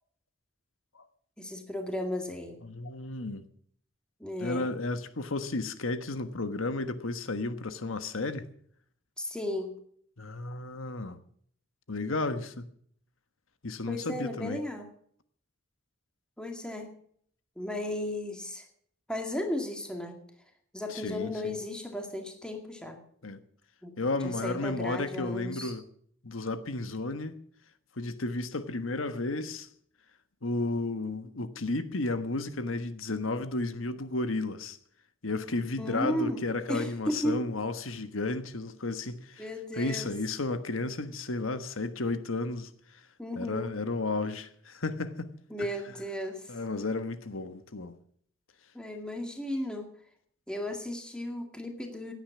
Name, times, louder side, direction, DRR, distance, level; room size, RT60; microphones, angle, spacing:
voice 1, 1.4-2.6 4.2-4.7 9.2-9.8 13.9-14.9 16.4-16.9 17.6-18.7 19.1-20.2 20.7-23.0 23.8-23.9 24.2-25.7 35.8-36.4 36.7-37.4 39.4-40.1 43.2-43.7 45.5-46.5 48.7-49.9 50.5-52.1, left 1 dB, 5° left, 2.0 m, -35 dB
voice 2, 2.6-3.4 4.4-8.5 10.2-11.2 11.9-12.7 13.6-14.6 20.9-21.6 23.2-23.4 24.0-25.8 26.2-27.4 28.0-29.7 30.4-34.8 35.2-39.5 39.8-42.7 43.4-45.3 45.6-45.7 46.5-48.0, left 2 dB, 85° left, 1.3 m, -33 dB
17.0 x 10.0 x 7.2 m
head